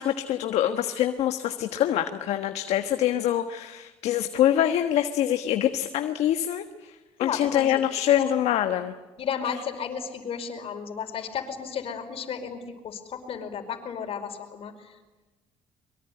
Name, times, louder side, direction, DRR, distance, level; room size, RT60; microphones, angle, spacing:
voice 1, 0.0-6.9 7.2-8.9, left 11 dB, 75° left, 7 dB, 1.4 m, -25 dB
voice 2, 7.2-7.8 8.3-8.4 9.2-14.9, left 7 dB, 60° left, 6 dB, 5.0 m, -33 dB
24.0 x 23.5 x 9.9 m, 1.2 s
cardioid pair, 90°, 11 cm